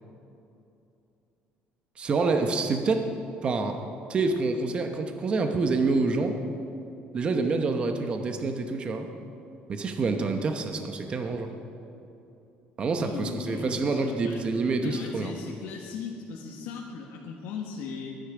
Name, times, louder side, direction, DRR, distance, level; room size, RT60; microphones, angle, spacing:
voice 1, 2.0-3.1 3.4-6.4 7.1-9.1 9.7-11.5 12.8-15.3, right 3 dB, 30° right, 5 dB, 0.9 m, -27 dB
voice 2, 13.0-14.4 14.8-18.2, left 5 dB, 80° left, -1 dB, 1.4 m, -38 dB
22.0 x 10.5 x 4.9 m, 2.8 s
cardioid pair, 155°, 4 cm